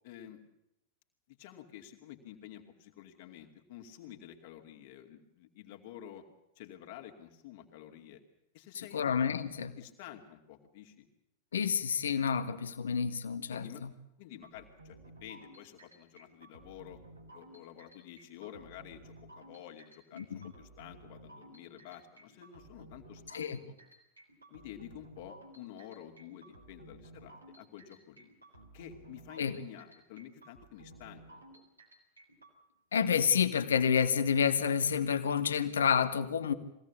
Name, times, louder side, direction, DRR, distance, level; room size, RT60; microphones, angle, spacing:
voice 1, 0.0-0.4 1.3-6.2 6.6-8.2 8.5-9.0 9.8-11.1 13.5-13.9 14.2-17.0 17.3-23.8 24.5-28.3 28.7-31.6, left 11 dB, 50° left, 4 dB, 2.6 m, -50 dB
voice 2, 8.8-9.7 11.5-13.9 20.2-20.5 23.3-23.6 29.4-29.6 32.9-36.5, left 7 dB, 65° left, 11 dB, 1.3 m, -29 dB
sound 1, 14.4-32.5, right 1 dB, 85° right, 4.0 m, -55 dB
22.5 x 17.0 x 8.4 m, 0.83 s
figure-of-eight pair, 90°, 0 cm